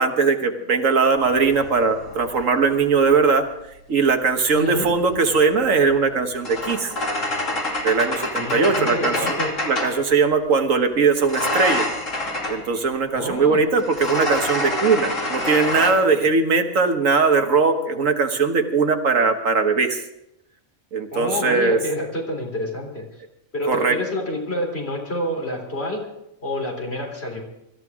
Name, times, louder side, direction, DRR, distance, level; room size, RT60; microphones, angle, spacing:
voice 1, 0.0-3.5 3.9-6.9 7.8-9.2 9.6-11.9 12.5-20.0 20.9-21.8 23.7-24.0, right 4 dB, 70° right, 6 dB, 1.7 m, -20 dB
sound 1, 1.1-3.3 4.5-10.0 11.2-12.7 13.8-15.9, left 1 dB, 65° left, 3.1 m, -27 dB
voice 2, 4.5-4.9 8.4-9.5 13.1-13.6 21.1-23.2 23.5-26.0 26.4-27.4, left 1 dB, 50° left, 0 dB, 3.9 m, -28 dB
24.5 x 14.0 x 3.6 m, 0.86 s
omnidirectional pair, 1.4 m